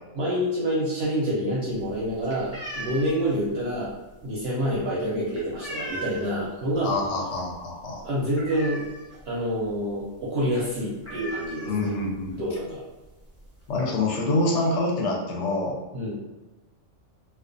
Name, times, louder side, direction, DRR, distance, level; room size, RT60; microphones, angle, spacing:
voice 1, 0.2-3.9 4.2-6.9 8.0-8.8 9.3-11.9 12.3-12.8 15.9-16.1, equal, 60° right, -6 dB, 0.7 m, -27 dB
sound 1, 1.7-6.5 6.8-7.1 7.4-7.5 7.9-9.3 9.6-9.7 10.0-10.2 10.5-10.6 11.0-12.3 13.0-13.1 13.4-13.8, right 1 dB, 15° left, 0.6 m, -38 dB
voice 2, 6.8-8.0 11.6-12.6 13.7-15.8, left 2 dB, 65° left, -2 dB, 0.8 m, -26 dB
2.3 x 2.3 x 2.5 m, 1.1 s
omnidirectional pair, 1.4 m